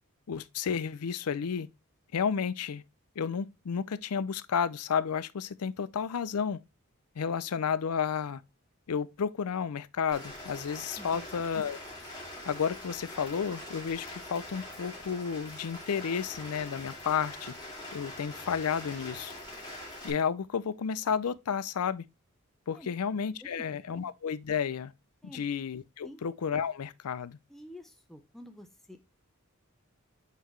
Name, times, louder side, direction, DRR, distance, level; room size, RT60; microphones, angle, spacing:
voice 1, 0.3-1.7 2.1-2.8 3.2-6.6 7.2-8.4 8.9-11.8 12.5-17.6 17.9-19.3 20.0-22.1 22.7-24.9 25.2-27.4, left 7 dB, 85° left, 0.5 m, -32 dB
Rain, 10.1-20.1, left 1 dB, 20° left, 2.3 m, -44 dB
voice 2, 23.4-24.0 25.2-25.5 26.0-26.2 27.5-29.0, left 1 dB, ahead, 0.6 m, -49 dB
8.1 x 4.0 x 3.1 m
head